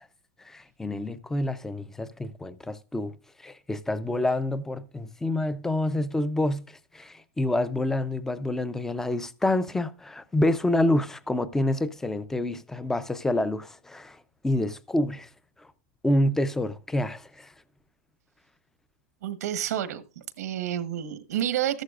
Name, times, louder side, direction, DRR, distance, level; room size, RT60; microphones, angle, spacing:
voice 1, 0.4-3.1 3.4-14.2 14.4-15.3 15.6-15.7 16.0-17.5, left 1 dB, 5° left, 0.5 m, -27 dB
voice 2, 19.2-21.8, right 11 dB, 85° right, 1.1 m, -30 dB
14.0 x 11.5 x 2.4 m
supercardioid pair, 160°, 8 cm